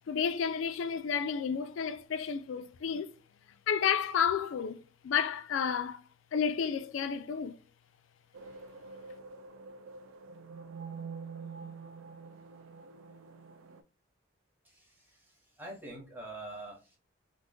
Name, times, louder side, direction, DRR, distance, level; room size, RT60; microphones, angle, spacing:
voice 1, 0.1-3.1 3.7-6.0 6.3-7.6, left 7 dB, 75° left, 0.3 m, -31 dB
sound 1, 8.3-13.8, right 5 dB, 85° right, 0.4 m, -46 dB
voice 2, 14.6-17.0, right 2 dB, 10° right, 0.7 m, -46 dB
2.5 x 2.4 x 3.6 m
head